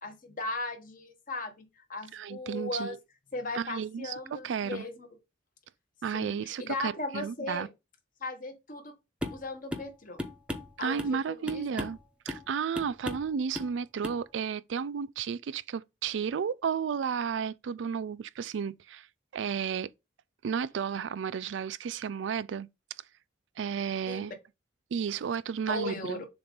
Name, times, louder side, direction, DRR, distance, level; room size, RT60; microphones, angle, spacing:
voice 1, 0.0-3.0 3.3-5.1 6.1-7.7 8.2-8.9 9.3-10.2 10.8-11.8 24.0-24.3 25.7-26.3, left 2 dB, 50° left, 1.3 m, -37 dB
voice 2, 2.1-3.0 3.5-4.9 6.0-7.7 10.8-12.0 12.3-19.1 19.3-19.9 20.4-22.7 23.6-24.3 24.9-26.2, right 7 dB, 80° right, 0.4 m, -33 dB
sound 1, 9.2-9.4 9.7-9.9 10.2-11.2 11.5-12.0 12.3-12.5 12.8-13.3 13.6-13.8 14.0-14.2, left 1 dB, 5° right, 0.8 m, -36 dB
6.9 x 2.6 x 5.2 m
head